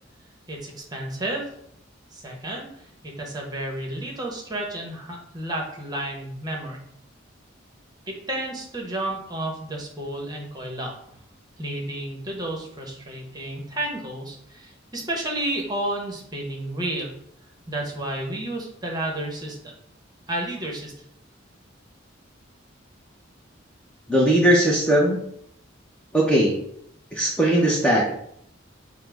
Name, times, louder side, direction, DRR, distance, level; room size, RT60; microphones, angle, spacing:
voice 1, 0.5-1.5 2.1-2.7 3.0-6.8 8.1-10.9 11.6-17.1 17.7-19.7 20.3-20.9, right 1 dB, 20° right, 0 dB, 0.9 m, -31 dB
voice 2, 24.1-25.2 26.1-26.5 27.1-28.1, right 1 dB, 5° left, -3 dB, 0.6 m, -19 dB
5.6 x 2.1 x 4.5 m, 0.70 s
head